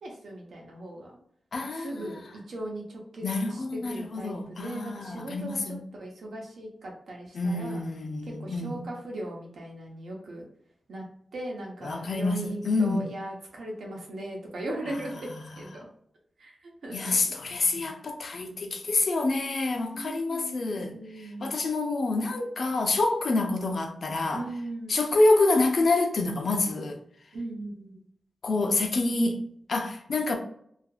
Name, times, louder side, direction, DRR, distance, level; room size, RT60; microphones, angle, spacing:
voice 1, 0.0-1.1 1.7-2.2 2.5-7.8 8.4-10.5 10.9-11.0 11.3-15.3 15.6-15.9 16.4-17.3 19.9-21.6 24.3-25.0 27.3-28.0, right 1 dB, 85° right, 0.8 m, -38 dB
voice 2, 1.5-2.2 3.2-5.9 7.3-8.9 11.8-13.0 14.9-15.6 16.9-24.5 24.9-27.0 28.4-30.4, left 2 dB, 60° left, 0.5 m, -27 dB
2.8 x 2.5 x 2.3 m
wide cardioid pair, 140°, 0 cm